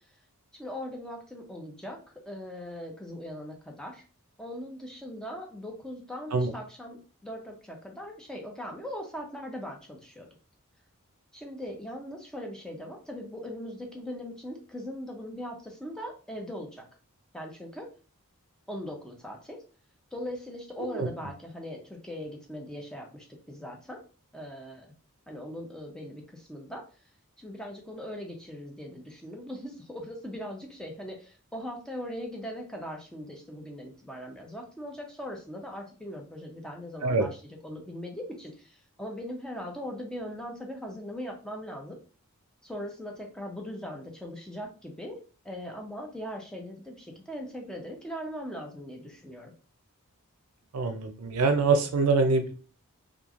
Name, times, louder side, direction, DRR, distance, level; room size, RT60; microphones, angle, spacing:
voice 1, 0.5-2.0 2.3-4.0 4.4-10.3 11.3-16.8 17.3-17.9 18.7-19.6 20.1-24.0 24.3-24.9 25.3-26.8 27.4-42.0 42.6-49.5, equal, 5° left, 1 dB, 0.5 m, -40 dB
voice 2, 50.7-52.5, right 3 dB, 75° right, 7 dB, 0.5 m, -24 dB
3.0 x 2.3 x 2.4 m, 0.37 s
head